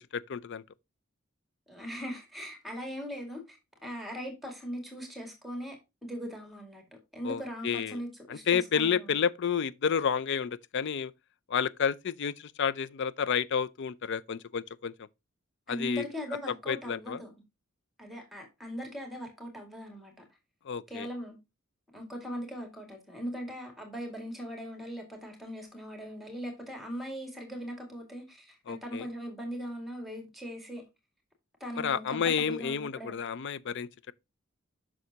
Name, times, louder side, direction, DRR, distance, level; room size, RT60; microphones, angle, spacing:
voice 1, 0.1-0.6 7.2-8.0 8.3-11.1 11.5-14.9 15.7-16.0 16.7-17.2 20.7-21.1 28.7-29.1 31.8-33.9, left 7 dB, 55° left, 0.4 m, -30 dB
voice 2, 1.7-6.8 7.1-9.2 15.7-17.3 18.0-20.1 20.9-21.4 21.9-30.8 31.6-33.1, equal, ahead, 2.1 m, -40 dB
7.8 x 6.2 x 2.8 m
head